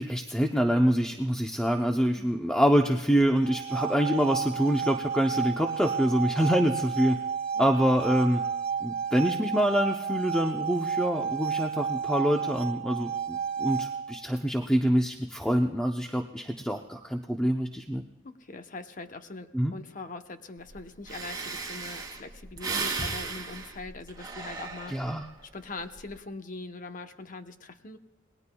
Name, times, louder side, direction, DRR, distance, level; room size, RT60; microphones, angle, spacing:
voice 1, 0.0-7.2 7.6-8.4 8.8-18.1 19.5-19.7 24.9-25.3, equal, 5° left, 3 dB, 0.6 m, -26 dB
sound 1, 3.4-14.3, right 7 dB, 45° right, 1.5 m, -32 dB
voice 2, 18.2-28.0, left 3 dB, 45° left, 7 dB, 0.9 m, -42 dB
Breathing, 20.7-20.8 21.1-25.3 25.8-26.2, right 4 dB, 20° right, 2.2 m, -35 dB
28.0 x 20.0 x 2.3 m, 1.1 s
head